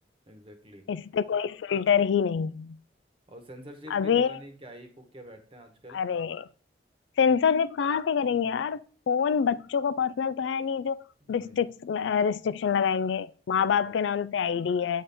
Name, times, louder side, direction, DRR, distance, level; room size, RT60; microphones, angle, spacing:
voice 1, 0.3-0.8 3.3-6.0 11.2-11.6 13.6-14.0, equal, 30° right, 1.1 m, -47 dB
voice 2, 0.9-2.8 3.9-4.4 5.9-6.5 7.2-11.0 11.3-15.0, left 7 dB, 90° left, 0.3 m, -26 dB
8.5 x 4.2 x 3.5 m
head